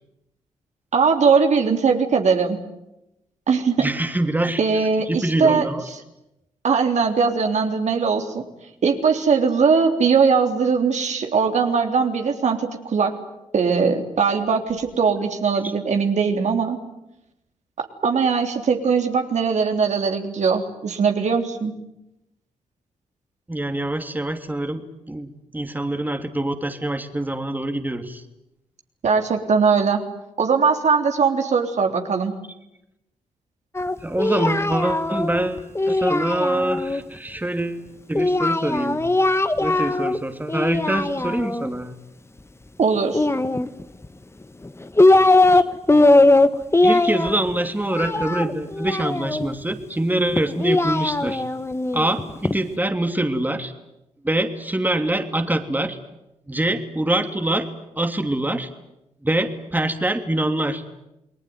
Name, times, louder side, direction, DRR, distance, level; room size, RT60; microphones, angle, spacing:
voice 1, 0.9-2.6 3.5-3.9 4.6-5.6 6.6-8.4 8.8-13.1 13.5-16.8 17.8-21.7 29.0-30.0 30.4-32.3 42.8-43.3, right 5 dB, 60° right, 4 dB, 3.4 m, -20 dB
voice 2, 3.8-5.8 23.5-24.8 25.1-28.2 34.0-37.8 38.1-39.0 39.6-42.0 45.5-45.6 46.8-51.4 51.9-53.7 54.2-56.0 56.5-57.7 58.0-58.7 59.2-60.8, right 1 dB, 15° right, 7 dB, 3.0 m, -24 dB
Singing, 33.7-37.0 38.1-40.2 40.5-41.7 43.1-44.1 44.6-45.6 45.9-49.5 50.3-52.6, left 2 dB, 20° left, 1.6 m, -20 dB
29.0 x 20.0 x 9.5 m, 0.89 s
supercardioid pair, 45°, 13 cm